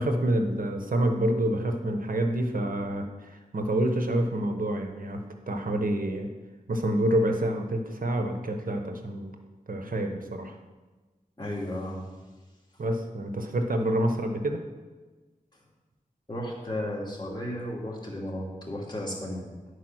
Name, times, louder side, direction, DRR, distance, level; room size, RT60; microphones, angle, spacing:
voice 1, 0.0-6.3 6.7-9.3 9.7-10.6 12.8-14.6, right 1 dB, 75° right, 5 dB, 1.0 m, -27 dB
voice 2, 11.4-12.1 15.5-15.6 16.3-19.4, left 1 dB, 30° left, -3 dB, 2.6 m, -34 dB
10.0 x 4.7 x 6.2 m, 1.3 s
wide cardioid pair, 55°, 15 cm